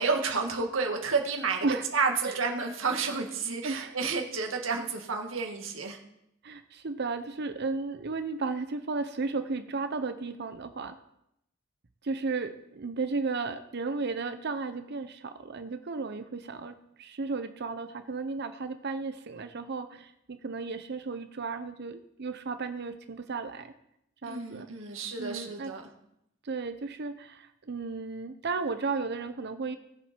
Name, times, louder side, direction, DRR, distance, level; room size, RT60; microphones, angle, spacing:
voice 1, 0.0-1.7 1.9-6.0 24.2-25.8, right 4 dB, 75° right, 2 dB, 2.0 m, -30 dB
voice 2, 3.6-3.9 6.4-11.0 12.0-23.7 24.2-24.7 25.2-25.7 26.4-29.8, right 4 dB, 55° right, 10 dB, 0.7 m, -34 dB
19.5 x 7.3 x 4.4 m, 0.79 s
head